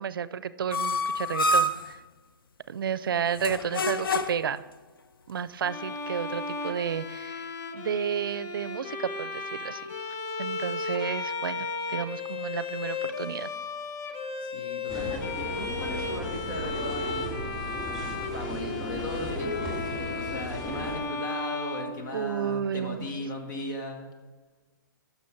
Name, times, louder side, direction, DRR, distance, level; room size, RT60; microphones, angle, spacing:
voice 1, 0.0-2.0 2.7-4.6 5.3-9.9 10.4-13.5 22.1-23.1, right 8 dB, 80° right, 16 dB, 0.5 m, -32 dB
sound 1, 0.7-1.9 3.4-4.5, left 1 dB, 85° left, 0.6 m, -27 dB
Bowed string instrument, 5.6-22.6, left 4 dB, 25° left, 0.5 m, -35 dB
voice 2, 14.4-17.4 18.3-19.8 20.1-24.1, left 2 dB, 60° left, 4 dB, 1.4 m, -37 dB
sound 2, 14.9-21.0, right 1 dB, ahead, 2.1 m, -35 dB
9.5 x 6.3 x 4.5 m, 1.3 s
hypercardioid pair, 155°, 12 cm